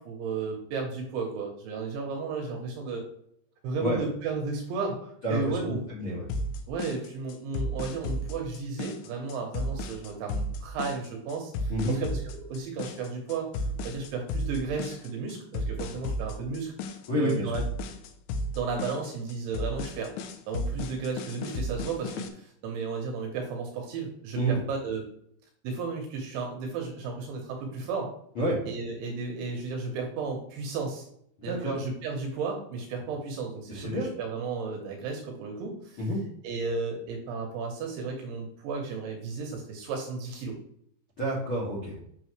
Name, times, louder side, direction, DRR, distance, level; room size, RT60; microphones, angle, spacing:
voice 1, 0.0-3.1 3.6-5.8 6.7-16.7 17.1-17.6 18.6-20.1 20.5-25.1 25.6-28.1 28.7-31.1 31.4-36.1 36.4-40.6, right 4 dB, 75° right, 1 dB, 3.1 m, -34 dB
voice 2, 5.2-6.2 11.7-12.0 17.1-17.4 24.4-24.6 28.4-28.6 31.5-31.8 33.7-34.1 36.0-36.2 41.2-41.9, right 1 dB, 45° left, -5 dB, 1.8 m, -28 dB
sound 1, 6.3-22.3, left 1 dB, 85° left, 2.7 m, -34 dB
9.1 x 6.1 x 3.2 m, 0.67 s
omnidirectional pair, 5.9 m